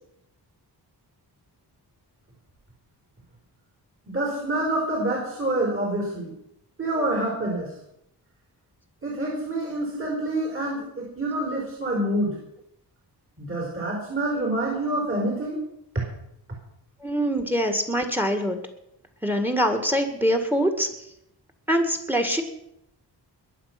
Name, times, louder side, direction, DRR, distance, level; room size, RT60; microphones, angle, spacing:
voice 1, 4.1-6.3 6.8-7.7 9.0-12.4 13.4-15.6 15.9-16.0, right 1 dB, 30° right, -1 dB, 4.7 m, -27 dB
voice 2, 17.0-18.6 19.2-20.9 21.7-22.4, equal, 5° right, 6 dB, 2.1 m, -24 dB
21.5 x 8.1 x 6.0 m, 0.79 s
wide cardioid pair, 105°, 41 cm